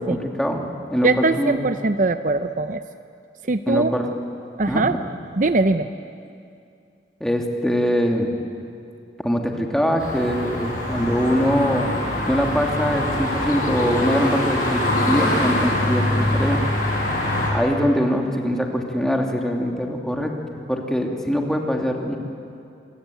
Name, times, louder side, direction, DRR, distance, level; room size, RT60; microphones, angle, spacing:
voice 1, 0.0-1.6 3.7-4.1 4.7-5.1 7.2-8.3 9.2-12.0 12.3-16.6 17.5-22.2, equal, 5° left, 1 dB, 2.5 m, -23 dB
voice 2, 1.0-2.8 3.5-3.9 4.6-5.0 5.4-5.9, right 3 dB, 45° right, 9 dB, 0.7 m, -21 dB
sound 1, 10.0-17.5, left 1 dB, 50° left, 6.6 m, -23 dB
27.5 x 23.0 x 9.2 m, 2.5 s
head